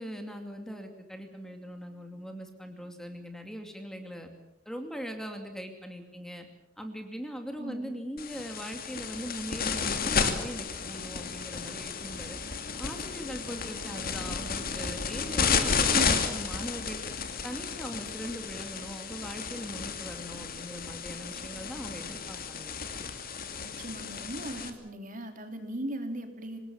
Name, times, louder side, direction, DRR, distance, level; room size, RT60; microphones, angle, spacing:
voice 1, 0.0-4.3 4.7-6.5 6.8-12.4 12.8-17.0 17.4-22.8, equal, 5° left, 5 dB, 2.6 m, -40 dB
voice 2, 7.6-7.9 15.9-16.4 23.6-26.6, right 1 dB, 45° right, 6 dB, 3.1 m, -38 dB
sound 1, 8.2-24.7, left 5 dB, 50° left, 2.6 m, -32 dB
25.5 x 20.5 x 7.2 m, 0.87 s
head